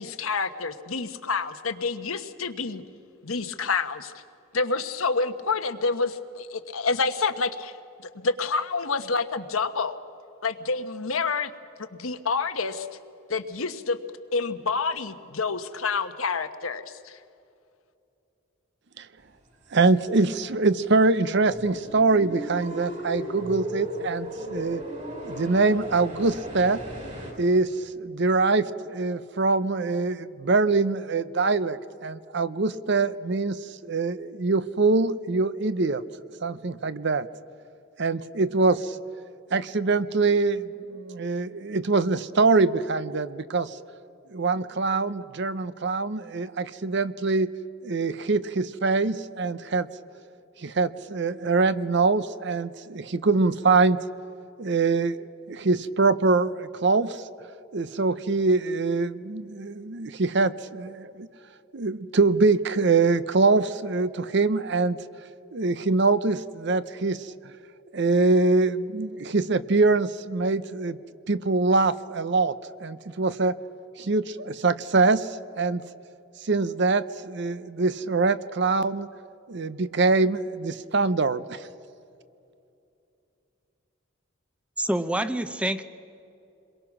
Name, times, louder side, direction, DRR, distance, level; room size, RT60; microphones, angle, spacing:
voice 1, 0.0-2.8 3.2-4.1 4.5-7.7 8.2-10.0 10.4-11.5 11.9-12.9 13.3-14.0 14.3-17.2, left 4 dB, 90° left, 9 dB, 1.2 m, -28 dB
voice 2, 19.7-24.8 25.2-26.8 27.4-36.0 36.4-37.3 38.0-39.0 39.5-43.8 44.3-47.5 47.8-49.9 50.6-54.0 54.6-57.2 57.7-61.3 61.7-65.0 65.5-67.3 67.9-71.0 71.3-72.6 72.8-73.6 74.0-75.3 75.6-75.8 76.4-79.1 79.5-81.6, right 3 dB, 55° right, 15 dB, 0.7 m, -24 dB
sound 1, 21.5-27.3, equal, 35° right, 4.9 m, -36 dB
voice 3, 84.8-85.8, right 1 dB, 5° right, 11 dB, 0.7 m, -26 dB
28.0 x 22.5 x 6.1 m, 2.6 s
head